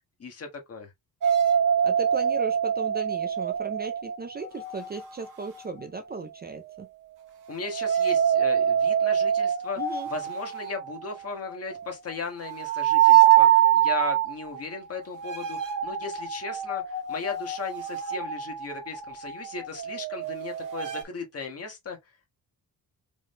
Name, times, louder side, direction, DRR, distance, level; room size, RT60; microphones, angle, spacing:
voice 1, 0.2-0.9 7.5-9.8 10.1-22.0, left 4 dB, 40° left, 1.6 m, -37 dB
sound 1, 1.2-5.8 7.6-21.0, right 10 dB, 60° right, 1.3 m, -25 dB
voice 2, 1.8-6.9 9.8-10.1, right 4 dB, 25° right, 0.4 m, -36 dB
5.0 x 3.7 x 2.2 m
wide cardioid pair, 170°, 37 cm